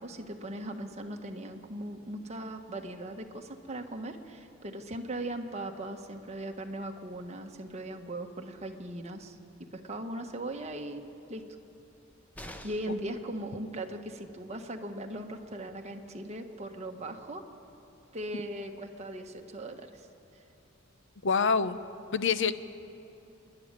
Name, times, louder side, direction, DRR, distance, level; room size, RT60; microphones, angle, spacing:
voice 1, 0.0-11.4 12.6-17.4 18.1-20.1, right 1 dB, 35° right, 3 dB, 1.3 m, -39 dB
sound 1, 12.3-13.1 15.0-15.1 15.5-15.6, equal, 10° left, 1.0 m, -46 dB
voice 2, 21.2-21.8 22.1-22.5, left 5 dB, 65° left, 13 dB, 0.7 m, -26 dB
27.5 x 11.0 x 9.8 m, 2.9 s
head